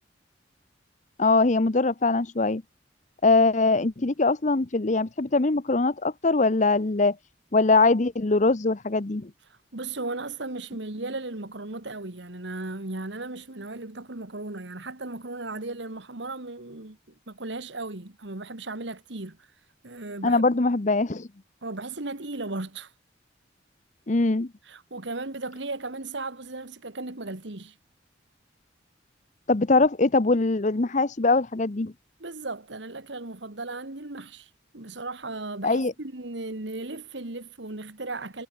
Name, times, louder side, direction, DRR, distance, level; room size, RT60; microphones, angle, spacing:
voice 1, 1.2-2.6 3.2-7.2 7.5-9.3 20.2-21.3 24.1-24.5 29.5-31.9 35.6-35.9, left 3 dB, 40° left, 0.8 m, -22 dB
voice 2, 9.5-17.0 17.3-19.5 19.8-20.4 21.6-22.9 24.7-27.8 32.2-38.5, right 2 dB, 65° right, 1.9 m, -36 dB
head